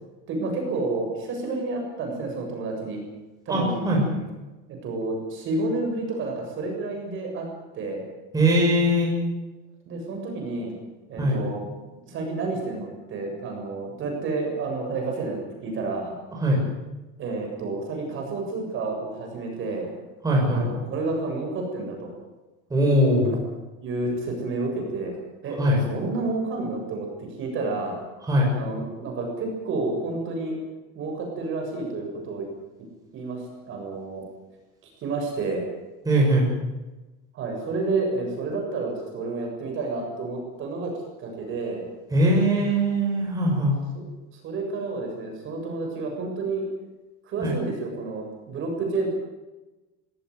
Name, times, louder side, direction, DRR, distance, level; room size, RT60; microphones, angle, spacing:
voice 1, 0.3-3.0 3.5-4.2 4.7-7.5 7.7-8.0 9.9-10.8 11.1-11.6 12.1-16.2 17.2-19.9 20.5-22.1 23.1-23.4 23.8-25.2 25.4-25.6 25.9-28.0 28.5-30.6 30.9-32.5 33.1-34.2 35.0-35.7 37.3-40.9 41.2-41.9 43.9-44.0 44.4-46.6 47.2-49.1, right 3 dB, 35° right, 2 dB, 7.3 m, -30 dB
voice 2, 3.5-4.0 8.3-9.1 11.2-11.4 16.4-16.6 20.2-20.6 22.7-23.3 25.6-25.8 28.3-28.5 36.0-36.5 42.1-43.8 47.4-47.5, right 1 dB, 10° right, -3 dB, 6.7 m, -21 dB
23.0 x 16.5 x 9.6 m, 1.1 s
cardioid pair, 165°, 36 cm